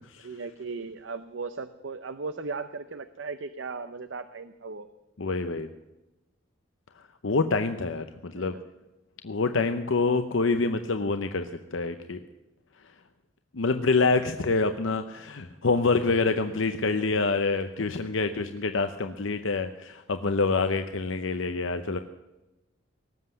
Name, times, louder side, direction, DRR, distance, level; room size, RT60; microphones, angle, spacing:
voice 1, 0.2-4.9 8.4-8.6 21.9-22.0, right 4 dB, 70° right, 11 dB, 0.7 m, -37 dB
voice 2, 5.2-5.7 7.2-8.5 9.2-12.2 13.5-22.0, left 3 dB, 80° left, 8 dB, 0.8 m, -26 dB
18.5 x 7.7 x 8.1 m, 1.0 s
head